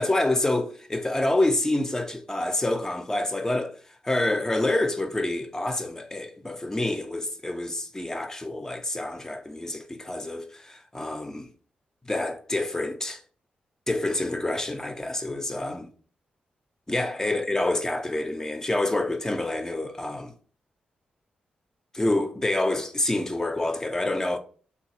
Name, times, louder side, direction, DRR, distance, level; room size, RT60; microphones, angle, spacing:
voice 1, 0.0-3.7 4.0-11.5 12.1-13.2 13.9-15.9 16.9-20.3 21.9-24.4, left 2 dB, 15° left, 0.4 m, -27 dB
3.1 x 2.3 x 2.9 m
cardioid pair, 65°, 3 cm